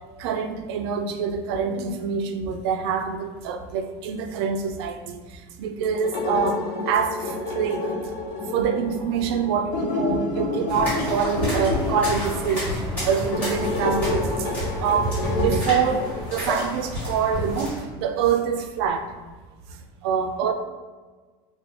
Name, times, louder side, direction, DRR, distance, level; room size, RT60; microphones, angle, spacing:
voice 1, 0.2-5.2 5.6-7.9 8.5-12.7 13.0-14.3 14.8-19.0 20.0-20.5, right 6 dB, 80° right, 7 dB, 0.4 m, -25 dB
sound 1, 5.9-16.7, left 2 dB, 75° left, 1.0 m, -29 dB
sound 2, 10.7-17.8, equal, 10° left, 1.5 m, -29 dB
3.0 x 2.2 x 3.5 m, 1.4 s
cardioid pair, 165°, 13 cm